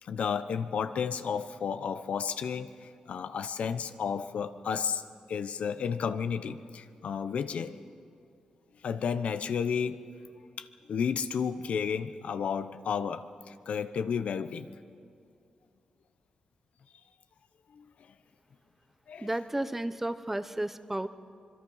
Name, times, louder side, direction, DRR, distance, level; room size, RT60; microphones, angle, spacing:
voice 1, 0.0-5.0 5.3-7.8 8.8-10.0 10.6-14.7 17.7-17.8 19.1-19.3, left 6 dB, 75° left, 11 dB, 0.9 m, -32 dB
voice 2, 19.2-21.1, right 1 dB, 10° right, 11 dB, 0.8 m, -32 dB
25.5 x 23.0 x 5.7 m, 2.3 s
wide cardioid pair, 115°, 2 cm